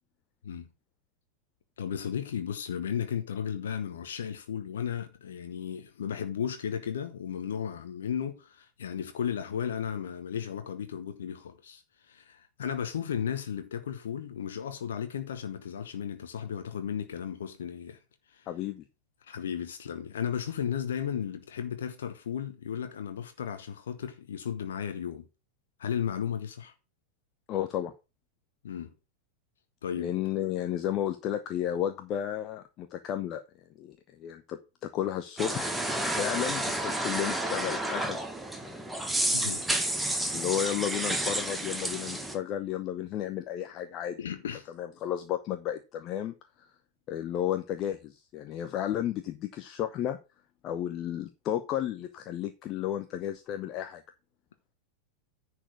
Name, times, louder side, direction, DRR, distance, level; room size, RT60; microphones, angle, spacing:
voice 1, 1.8-18.0 18.3-18.5 19.2-25.3 25.8-26.7 28.6-28.9 29.8-30.1 39.3-39.6 44.2-44.7, left 8 dB, 65° left, 1.0 m, -34 dB
voice 2, 18.5-18.9 27.5-27.9 30.0-33.4 33.8-35.7 36.1-38.2 40.3-44.2 44.8-46.3 47.1-50.2 50.6-54.0, left 11 dB, 35° left, 0.8 m, -33 dB
sound 1, 35.4-42.4, right 1 dB, 5° right, 1.4 m, -30 dB
10.0 x 4.6 x 6.0 m
figure-of-eight pair, 90°, 0 cm